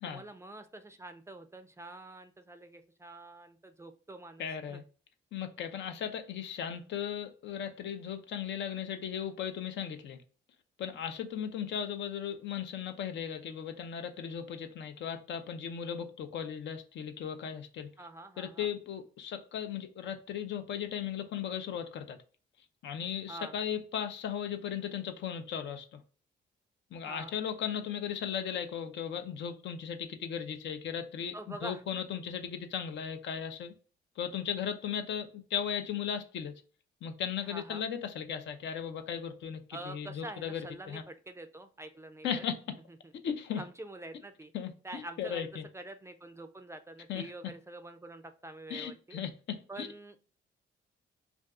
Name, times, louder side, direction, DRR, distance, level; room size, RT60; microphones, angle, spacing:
voice 1, 0.1-4.8 18.0-18.7 23.3-23.6 27.0-27.4 31.3-31.8 37.4-37.9 39.7-42.4 43.6-44.5 44.8-45.5 45.7-49.2 49.7-50.2, right 2 dB, 15° right, 0.4 m, -46 dB
voice 2, 4.4-4.8 5.3-10.2 10.8-17.9 18.4-22.2 22.8-26.0 26.9-33.7 34.2-36.5 37.0-40.6 40.9-41.0 42.2-42.8 43.2-43.6 44.5-45.6 47.1-47.2 48.7-49.9, left 8 dB, 65° left, 0.5 m, -37 dB
2.5 x 2.3 x 3.5 m
cardioid pair, 90°, 20 cm